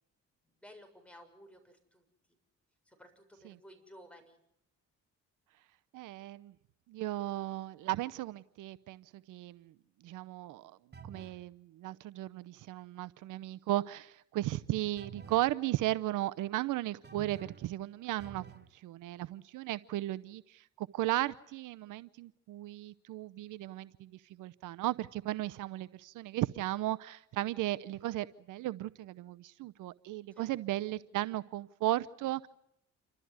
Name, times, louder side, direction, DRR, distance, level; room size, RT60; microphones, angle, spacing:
voice 1, 0.4-2.4 2.9-4.4 30.3-30.5, equal, 5° left, 4 dB, 6.9 m, -56 dB
voice 2, 5.9-6.5 6.9-9.7 10.0-10.8 11.1-32.5, right 15 dB, 85° right, 15 dB, 0.8 m, -36 dB
sound 1, 10.9-11.4 15.0-15.5 17.0-17.7 18.2-18.7, right 6 dB, 35° right, 1.9 m, -49 dB
28.5 x 13.5 x 9.5 m, 0.77 s
cardioid pair, 90°, 30 cm